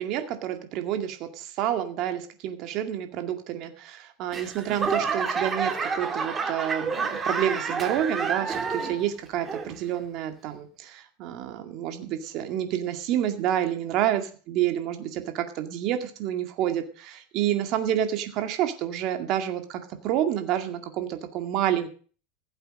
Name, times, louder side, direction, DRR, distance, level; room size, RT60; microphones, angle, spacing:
voice 1, 0.0-21.9, right 11 dB, 45° right, 7 dB, 2.1 m, -29 dB
Laughter / Clapping / Crowd, 4.3-9.1 9.4-10.0 10.5-10.6, right 5 dB, 20° right, 1.9 m, -29 dB
15.5 x 8.1 x 6.4 m, 0.41 s
supercardioid pair, 140°, 0 cm